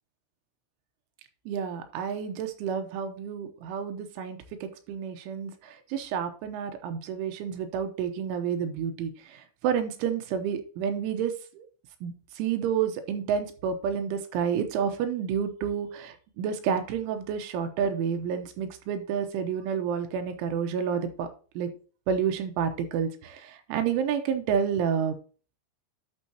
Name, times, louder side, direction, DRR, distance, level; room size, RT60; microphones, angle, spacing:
voice 1, 1.5-11.7 12.0-21.3 21.6-21.7 22.1-25.2, right 7 dB, 85° right, 7 dB, 3.3 m, -30 dB
11.0 x 6.4 x 2.8 m, 0.38 s
omnidirectional pair, 5.6 m